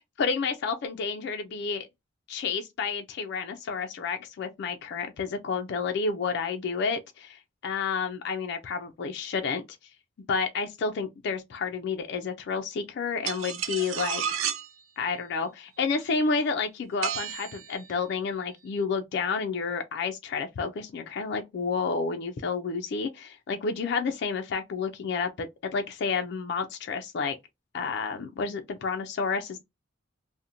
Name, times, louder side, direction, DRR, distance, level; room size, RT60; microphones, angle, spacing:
voice 1, 0.2-1.9 2.3-9.6 10.3-14.2 15.0-27.4 27.7-29.6, left 5 dB, 55° left, 0.3 m, -30 dB
sound 1, 13.2-14.7 17.0-17.8, right 9 dB, 80° right, 0.4 m, -31 dB
2.5 x 2.1 x 2.7 m
head